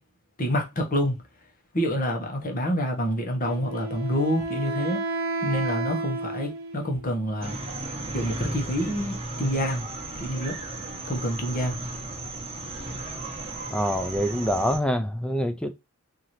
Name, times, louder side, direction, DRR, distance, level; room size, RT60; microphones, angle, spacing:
voice 1, 0.4-1.2 1.7-5.0 5.4-7.6 8.1-9.9 10.2-10.6 11.0-11.8, equal, 40° left, 1.1 m, -27 dB
Wind instrument woodwind instrument, 3.4-7.1, right 2 dB, 60° right, 0.8 m, -31 dB
sound 1, 7.4-14.8, right 2 dB, 25° right, 1.0 m, -35 dB
voice 2, 13.7-15.7, equal, 5° left, 0.3 m, -25 dB
4.1 x 2.8 x 3.1 m
head